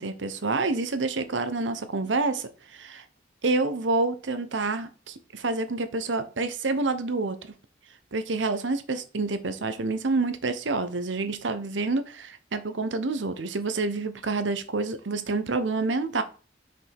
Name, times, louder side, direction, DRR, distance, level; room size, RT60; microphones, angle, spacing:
voice 1, 0.0-3.0 3.4-7.4 8.1-16.2, right 3 dB, 90° right, 0.9 m, -28 dB
6.0 x 5.4 x 3.5 m
head